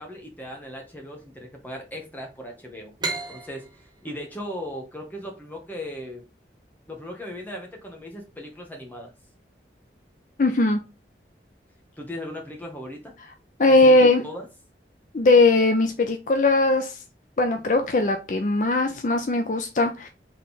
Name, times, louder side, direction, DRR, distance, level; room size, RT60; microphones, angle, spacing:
voice 1, 0.0-2.9 3.3-6.2 6.9-9.1 12.0-13.1 13.7-14.5, equal, 10° left, 1 dB, 1.0 m, -37 dB
sound 1, 3.0-6.4, right 3 dB, 25° right, 0.9 m, -36 dB
voice 2, 10.4-10.8 13.6-14.2 15.1-17.0 17.4-20.1, left 2 dB, 45° left, 6 dB, 0.4 m, -19 dB
3.8 x 3.2 x 4.0 m, 0.29 s
head